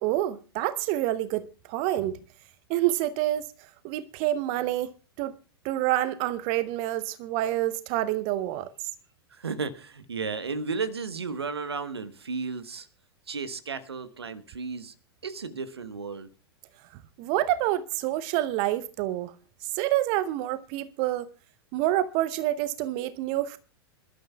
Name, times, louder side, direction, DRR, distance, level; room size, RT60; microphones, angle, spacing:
voice 1, 0.0-2.2 2.7-3.5 3.8-5.4 5.6-8.9 17.2-19.3 19.6-21.3 21.7-23.6, right 14 dB, 40° right, 0.7 m, -27 dB
voice 2, 9.3-12.9 13.3-14.9 15.2-16.3, right 4 dB, 75° right, 1.2 m, -34 dB
27.5 x 12.0 x 2.3 m
figure-of-eight pair, 95°, 13 cm